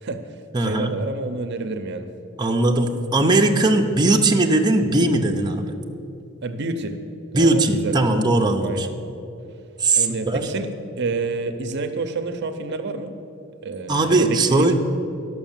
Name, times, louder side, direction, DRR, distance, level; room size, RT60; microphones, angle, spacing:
voice 1, 0.0-2.1 6.4-6.9 7.3-8.0 8.6-8.9 10.0-10.7 11.0-13.1 13.6-14.7, right 3 dB, 55° right, 8 dB, 0.6 m, -29 dB
voice 2, 0.5-1.0 2.4-5.7 7.3-8.9 9.8-10.5 13.9-14.7, right 2 dB, 20° right, 1 dB, 0.7 m, -19 dB
11.5 x 6.2 x 7.3 m, 2.8 s
head